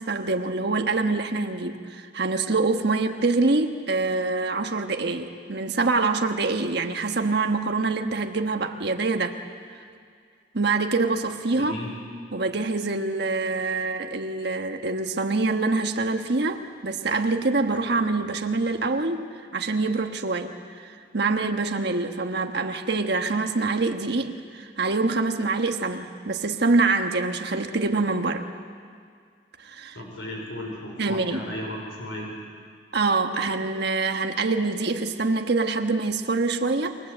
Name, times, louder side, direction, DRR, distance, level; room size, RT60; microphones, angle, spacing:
voice 1, 0.0-9.4 10.5-11.7 12.3-19.3 19.5-28.5 29.6-30.0 31.0-31.4 32.9-37.0, right 3 dB, 60° right, 5 dB, 1.4 m, -25 dB
voice 2, 11.5-11.9 29.9-32.3, left 1 dB, 90° left, 0 dB, 5.1 m, -35 dB
28.5 x 23.0 x 8.0 m, 2.2 s
head